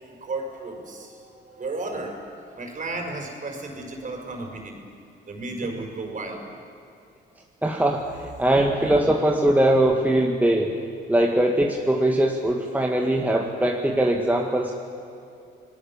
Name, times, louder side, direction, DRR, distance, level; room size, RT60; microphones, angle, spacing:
voice 1, 0.0-4.8 5.3-6.4, right 2 dB, 40° right, 3 dB, 5.6 m, -34 dB
voice 2, 7.6-10.8 11.1-14.7, right 1 dB, 10° right, 0 dB, 2.0 m, -21 dB
28.0 x 19.0 x 7.3 m, 2.6 s
cardioid pair, 90°, 20 cm